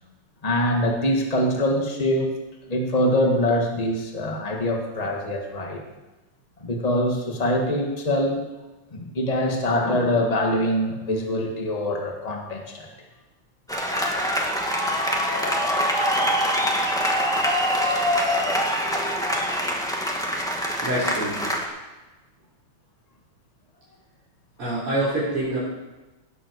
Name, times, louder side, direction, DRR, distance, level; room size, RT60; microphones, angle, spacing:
voice 1, 0.4-2.3 2.7-5.8 6.6-8.5 8.9-12.9 18.8-19.3, left 1 dB, 20° left, 1 dB, 1.7 m, -24 dB
sound 1, 13.7-21.7, equal, ahead, 1.6 m, -24 dB
voice 2, 14.9-15.3 20.8-21.4 24.6-25.6, right 1 dB, 80° right, -9 dB, 4.4 m, -26 dB
17.5 x 7.6 x 6.6 m, 1.1 s
omnidirectional pair, 2.4 m